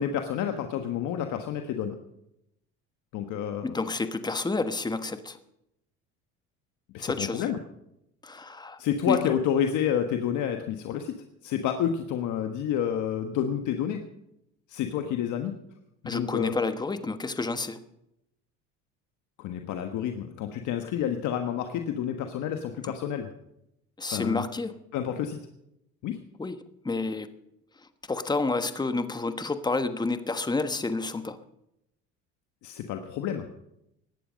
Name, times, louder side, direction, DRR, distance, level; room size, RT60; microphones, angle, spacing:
voice 1, 0.0-2.0 3.1-3.8 6.9-7.6 8.8-11.1 11.4-14.0 14.7-15.5 16.0-16.5 19.4-23.3 24.1-24.4 24.9-25.4 26.0-26.2 32.6-33.5, left 9 dB, 65° left, 5 dB, 1.5 m, -29 dB
voice 2, 3.6-5.4 7.0-7.4 8.2-8.8 9.0-9.3 16.0-17.8 22.8-22.9 24.0-24.8 26.4-26.6 26.8-27.3 28.1-31.4, left 3 dB, 15° left, 10 dB, 1.2 m, -29 dB
17.0 x 11.5 x 5.2 m, 0.81 s
supercardioid pair, 95°, 32 cm